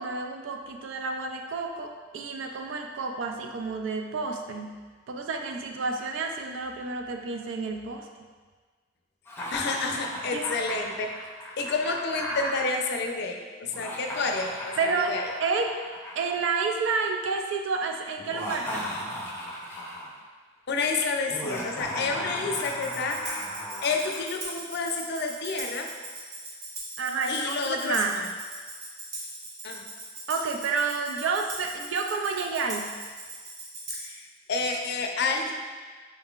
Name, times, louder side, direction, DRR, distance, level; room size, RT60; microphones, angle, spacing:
voice 1, 0.0-4.8 5.1-8.1 10.3-10.5 14.8-15.7 16.2-19.0 27.0-28.2 30.3-33.0, right 4 dB, 75° right, 3 dB, 0.4 m, -30 dB
Laughter, 9.3-12.7 13.6-16.9 18.2-20.2 21.3-24.2, equal, 10° left, 0.6 m, -36 dB
voice 2, 9.5-11.1 11.6-15.3 20.7-23.2 23.8-25.9 27.3-28.3 29.6-29.8 33.9-35.5, left 4 dB, 60° left, 3 dB, 0.5 m, -29 dB
Tambourine, 22.5-34.2, right 2 dB, 55° right, 0.9 m, -40 dB
5.3 x 3.7 x 2.4 m, 1.5 s
head